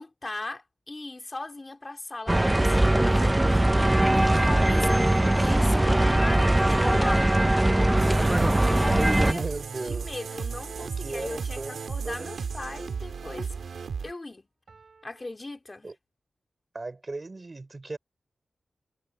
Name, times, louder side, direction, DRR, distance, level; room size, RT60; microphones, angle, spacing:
voice 1, 0.0-8.1 8.7-9.4 9.8-13.5 14.0-14.5 15.0-15.9, left 2 dB, 25° left, 3.1 m, -38 dB
sound 1, 2.3-9.3, right 1 dB, 15° right, 0.5 m, -21 dB
sound 2, 8.0-14.1, right 6 dB, 85° right, 1.7 m, -35 dB
voice 2, 9.3-10.1 10.8-12.3 15.8-15.9 16.7-18.0, right 3 dB, 35° right, 3.7 m, -37 dB
sound 3, 11.5-13.0 14.7-15.3, right 4 dB, 55° right, 7.9 m, -61 dB
wide cardioid pair, 105°, 0 cm